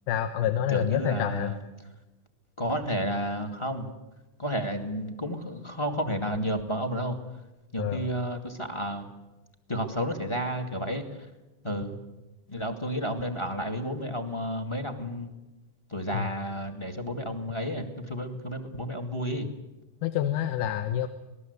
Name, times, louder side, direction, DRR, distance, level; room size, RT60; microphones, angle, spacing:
voice 1, 0.1-1.5 7.8-8.1 16.1-16.3 20.0-21.1, left 10 dB, 85° left, 8 dB, 2.5 m, -27 dB
voice 2, 0.7-1.6 2.6-3.9 4.4-7.2 7.7-9.1 9.7-11.0 11.6-12.0 12.5-15.3 15.9-19.5, equal, 10° left, 5 dB, 1.6 m, -31 dB
27.0 x 19.5 x 8.2 m, 1.1 s
omnidirectional pair, 3.5 m